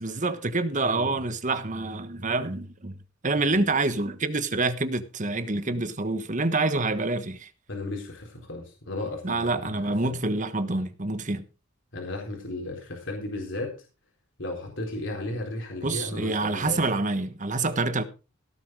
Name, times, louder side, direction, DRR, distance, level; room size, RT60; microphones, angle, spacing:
voice 1, 0.0-2.9 3.2-7.5 9.2-11.4 15.8-18.0, right 3 dB, 40° right, 1.4 m, -27 dB
voice 2, 0.9-1.2 3.5-3.6 7.7-10.1 11.9-13.7 14.4-16.8, left 2 dB, 65° left, 4.1 m, -35 dB
17.5 x 7.8 x 4.9 m
head